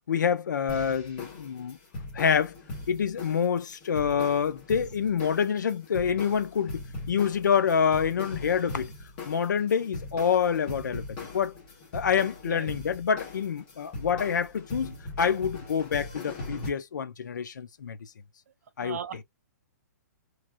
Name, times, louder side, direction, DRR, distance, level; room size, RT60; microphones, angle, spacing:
voice 1, 0.1-1.8 2.1-2.5 2.9-8.9 9.2-11.0 11.3-11.5 11.9-18.0 18.8-19.0, left 7 dB, 90° left, 0.6 m, -27 dB
sound 1, 0.7-16.7, left 2 dB, 25° left, 1.2 m, -40 dB
voice 2, 18.8-19.2, right 8 dB, 55° right, 0.6 m, -37 dB
3.2 x 2.2 x 2.5 m
hypercardioid pair, 165°, 10 cm